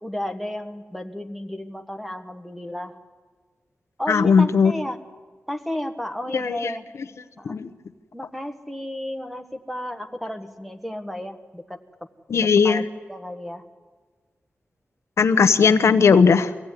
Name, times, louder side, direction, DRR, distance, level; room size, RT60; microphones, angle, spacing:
voice 1, 0.0-3.0 4.0-5.0 5.5-6.8 7.4-7.6 8.1-11.8 12.6-13.6, left 1 dB, ahead, 7 dB, 1.3 m, -32 dB
voice 2, 4.1-4.7 6.3-6.7 7.4-7.7 12.3-12.8 15.2-16.5, left 5 dB, 80° left, 10 dB, 1.0 m, -17 dB
23.5 x 16.0 x 9.8 m, 1.5 s
wide cardioid pair, 155°, 5 cm